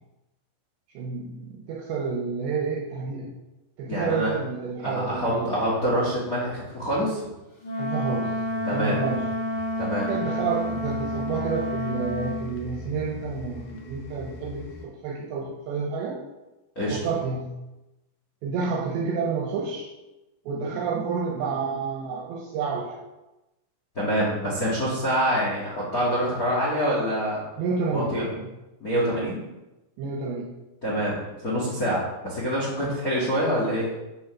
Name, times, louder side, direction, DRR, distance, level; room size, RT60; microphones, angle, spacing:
voice 1, 0.9-3.3 3.8-5.5 7.8-8.4 8.7-9.3 10.1-16.2 16.9-17.5 18.4-19.9 20.5-23.0 27.6-28.5 30.0-30.5 32.8-33.0, right 5 dB, 75° right, 0 dB, 3.0 m, -29 dB
voice 2, 3.9-4.3 4.8-7.3 8.6-9.0 9.8-10.1 16.7-17.0 23.9-27.4 27.9-28.3 28.8-29.4 30.8-31.1 31.4-33.9, equal, 85° left, -5 dB, 0.7 m, -26 dB
Wind instrument woodwind instrument, 7.6-12.4, left 1 dB, 30° left, 2.2 m, -29 dB
sound 1, 8.1-14.9, right 1 dB, 60° left, 2.7 m, -41 dB
8.4 x 6.3 x 5.8 m, 1.0 s
omnidirectional pair, 5.4 m